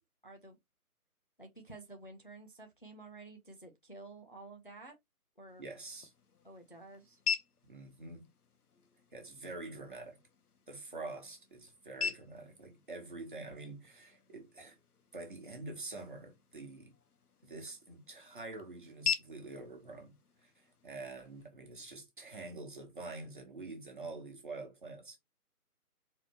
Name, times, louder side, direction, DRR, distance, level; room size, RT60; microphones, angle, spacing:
voice 1, 0.2-0.6 1.4-5.0 5.4-5.7 6.4-7.2, right 2 dB, 35° left, 0.6 m, -51 dB
sound 1, 5.5-21.5, left 6 dB, 75° left, 0.9 m, -44 dB
voice 2, 5.6-6.1 7.7-8.3 9.1-10.2 10.7-14.8 15.1-16.9 17.4-20.1 20.4-25.2, right 3 dB, 35° right, 1.3 m, -46 dB
4.2 x 2.8 x 2.9 m
figure-of-eight pair, 170°, 46 cm